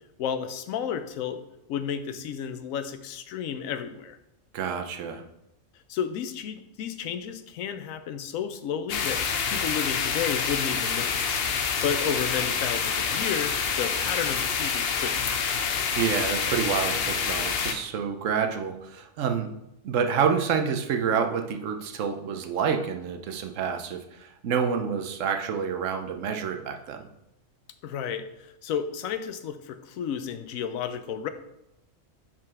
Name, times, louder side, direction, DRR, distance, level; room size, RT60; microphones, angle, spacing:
voice 1, 0.2-1.4 1.7-4.2 5.9-11.4 11.8-15.3 27.8-31.3, left 8 dB, 80° left, 10 dB, 1.0 m, -32 dB
voice 2, 4.5-5.2 16.0-19.5 19.8-27.1, right 6 dB, 70° right, 5 dB, 1.0 m, -28 dB
sound 1, 8.9-17.7, left 6 dB, 55° left, 0.8 m, -27 dB
5.6 x 5.1 x 4.8 m, 0.86 s
omnidirectional pair, 1.4 m